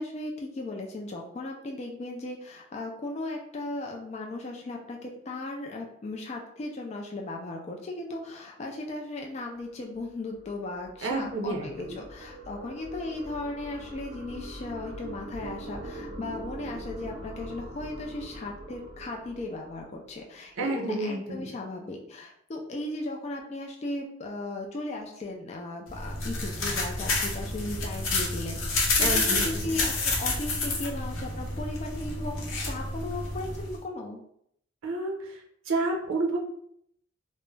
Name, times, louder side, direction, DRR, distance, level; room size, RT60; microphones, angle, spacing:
voice 1, 0.0-34.2, left 2 dB, 30° left, 1 dB, 0.3 m, -37 dB
sound 1, 9.7-20.3, right 1 dB, 35° right, 0.6 m, -43 dB
voice 2, 11.0-11.7 20.6-21.5 29.0-29.7 34.8-35.4 35.7-36.4, right 2 dB, 80° right, 1 dB, 0.5 m, -30 dB
sound 2, 25.9-33.8, left 2 dB, 80° left, 0.6 m, -29 dB
2.2 x 2.0 x 3.1 m, 0.70 s
head